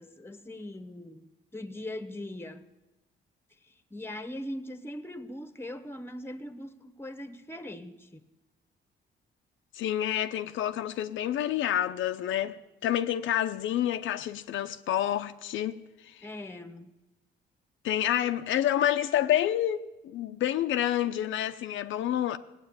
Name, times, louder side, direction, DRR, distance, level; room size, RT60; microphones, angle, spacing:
voice 1, 0.0-2.6 3.7-8.3 16.2-16.9, left 1 dB, 10° left, 1.2 m, -41 dB
voice 2, 9.7-15.8 16.1-16.2 17.8-22.4, left 11 dB, 80° left, 0.7 m, -28 dB
18.0 x 8.9 x 8.8 m
cardioid pair, 90°, 20 cm